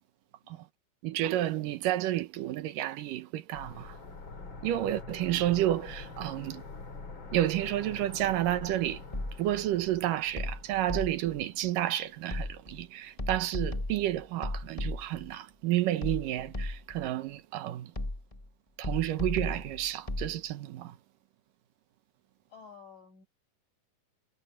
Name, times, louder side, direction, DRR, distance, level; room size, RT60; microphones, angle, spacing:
voice 1, 1.0-4.0 4.6-6.6 7.3-9.0 9.4-17.9 18.8-21.0, right 13 dB, 85° right, 2.7 m, -31 dB
sound 1, 3.5-12.3 12.5-12.6, left 3 dB, 35° left, 3.7 m, -45 dB
sound 2, 9.1-9.6 10.4-11.4 12.3-12.8 13.2-15.3 16.0-17.1 17.9-18.5 18.8-20.3, left 2 dB, 15° left, 1.1 m, -35 dB
voice 2, 22.5-23.3, left 6 dB, 75° left, 8.5 m, -51 dB
omnidirectional pair, 3.8 m